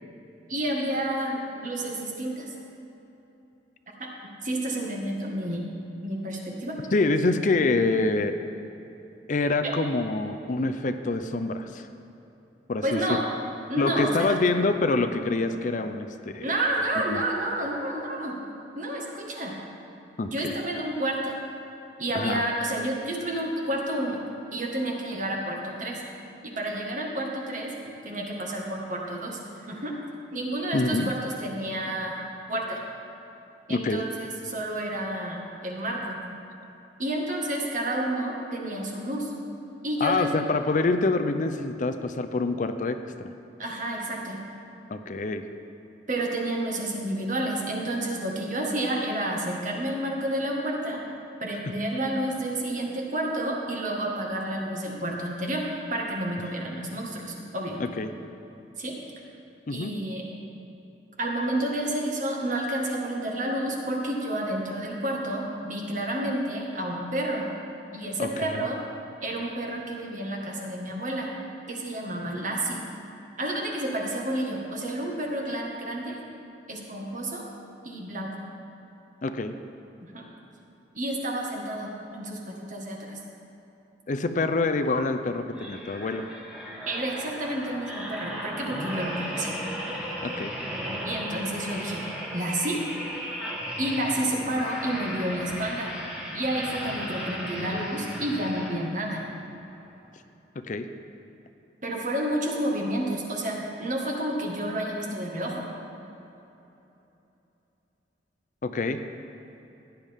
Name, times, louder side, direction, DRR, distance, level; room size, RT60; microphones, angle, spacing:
voice 1, 0.5-2.6 4.0-5.7 6.0-6.7 12.8-13.2 13.7-14.4 16.4-18.3 18.7-19.5 20.2-21.4 22.0-24.2 24.5-26.0 26.4-30.0 30.3-32.2 32.5-32.8 33.7-36.2 37.0-39.3 39.8-40.4 43.6-44.4 46.1-51.0 51.4-55.6 55.9-57.8 58.8-59.0 59.7-60.3 61.2-67.5 67.9-68.8 69.2-71.3 71.7-72.8 73.4-76.2 76.7-77.5 77.8-78.3 80.0-80.2 80.9-83.2 86.8-89.6 91.0-92.0 92.3-92.8 93.8-95.9 96.3-99.2 101.8-105.6, right 1 dB, 45° right, -1 dB, 1.7 m, -30 dB
voice 2, 6.9-8.4 9.3-11.9 12.7-13.2 13.8-16.1 16.3-16.5 17.1-17.2 20.2-20.3 22.1-22.4 30.7-31.1 33.7-34.0 40.0-43.3 44.9-45.5 58.0-58.1 59.7-59.9 68.2-68.3 79.2-79.5 84.1-86.3 90.2-90.5 100.6-100.9 108.6-109.0, left 3 dB, 45° left, 8 dB, 0.5 m, -26 dB
sound 1, 85.5-99.1 99.6-99.8, equal, 5° right, 1.7 m, -35 dB
16.0 x 10.0 x 3.6 m, 3.0 s
head